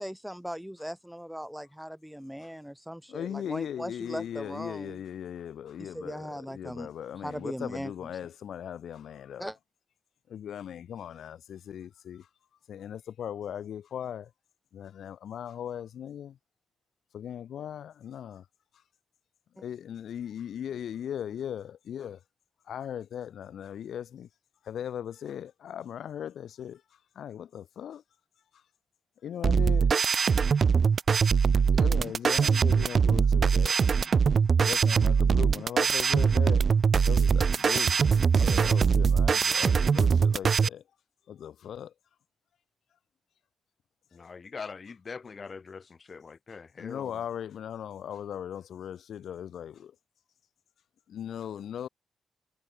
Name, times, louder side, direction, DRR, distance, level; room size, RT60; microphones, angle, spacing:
voice 1, 0.0-5.0 5.9-6.9 7.2-7.9 9.4-9.5, equal, ahead, 1.8 m, -38 dB
voice 2, 3.1-9.5 10.3-12.3 12.7-14.3 14.7-16.4 17.1-18.5 19.5-22.2 22.6-24.3 24.6-28.0 28.5-28.6 29.2-30.3 31.7-33.8 34.6-36.7 37.0-38.0 38.3-40.8 41.3-41.9 44.1-44.3 46.5-49.9 51.1-51.9, left 9 dB, 80° left, 6.4 m, -38 dB
sound 1, 29.4-40.7, right 6 dB, 55° right, 0.9 m, -22 dB
voice 3, 44.1-47.1, left 5 dB, 50° left, 7.3 m, -42 dB
cardioid pair, 60°, 0 cm